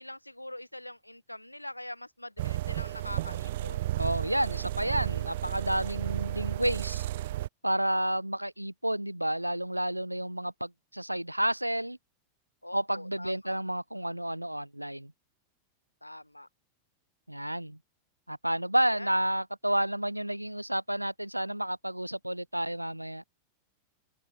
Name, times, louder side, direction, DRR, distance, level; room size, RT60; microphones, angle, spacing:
voice 1, 0.0-3.9 12.6-13.6 16.0-16.5 18.9-19.1, left 1 dB, 85° left, 3.3 m, -43 dB
sound 1, 2.4-7.5, right 15 dB, 55° right, 2.7 m, -33 dB
voice 2, 4.0-7.0 7.6-12.0 12.7-15.1 17.3-17.8 18.3-23.2, right 1 dB, 90° right, 3.9 m, -30 dB
open air
figure-of-eight pair, 90°, 0 cm